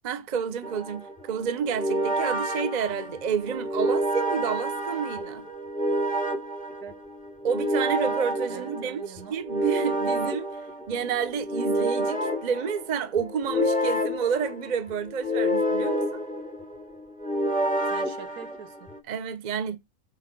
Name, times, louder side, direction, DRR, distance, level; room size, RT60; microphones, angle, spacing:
voice 1, 0.0-5.5 7.4-10.5 10.9-16.2 19.1-19.8, right 7 dB, 40° right, 0.7 m, -29 dB
sound 1, 0.6-19.0, equal, 5° left, 1.2 m, -29 dB
voice 2, 8.5-9.3 17.9-18.9, right 7 dB, 80° right, 1.4 m, -43 dB
6.8 x 4.7 x 5.9 m
omnidirectional pair, 1.5 m